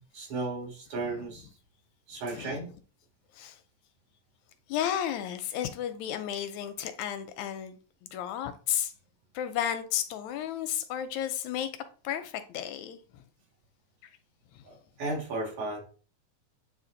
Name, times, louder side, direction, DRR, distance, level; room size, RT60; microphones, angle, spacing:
voice 1, 0.0-1.5 2.1-2.7 14.7-15.8, right 2 dB, 75° right, 3.5 m, -35 dB
voice 2, 2.3-2.6 3.4-3.6 4.7-8.9 9.3-11.7 12.0-13.2 14.5-14.6, left 10 dB, 80° left, 1.9 m, -33 dB
9.1 x 3.1 x 3.9 m
omnidirectional pair, 3.4 m